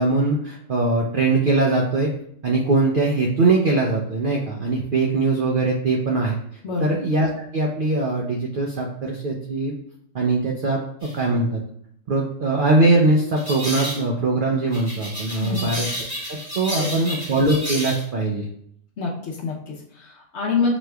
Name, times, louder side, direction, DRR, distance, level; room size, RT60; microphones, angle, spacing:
voice 1, 0.0-2.1 2.4-6.4 6.8-9.7 10.1-11.6 12.1-15.9 16.3-18.5, right 2 dB, 80° right, -1 dB, 0.4 m, -21 dB
sound 1, 11.0-11.2 13.4-14.0 14.7-18.0, equal, 25° right, 1.7 m, -31 dB
voice 2, 15.4-15.7 16.7-17.0 19.0-20.8, left 4 dB, 60° left, -1 dB, 0.8 m, -26 dB
6.1 x 3.0 x 2.2 m, 0.68 s
omnidirectional pair, 1.6 m